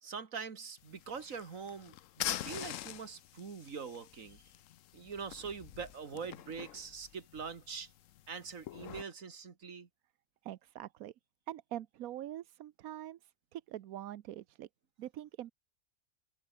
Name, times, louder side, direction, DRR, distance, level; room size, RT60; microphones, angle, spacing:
voice 1, 0.0-4.4 4.9-7.9 8.3-9.9, right 5 dB, 70° right, 2.3 m, -43 dB
sound 1, 0.8-9.0, left 12 dB, 70° left, 1.0 m, -45 dB
voice 2, 10.4-11.1 11.5-14.7 15.0-15.5, right 12 dB, 85° right, 1.2 m, -44 dB
open air
omnidirectional pair, 1.5 m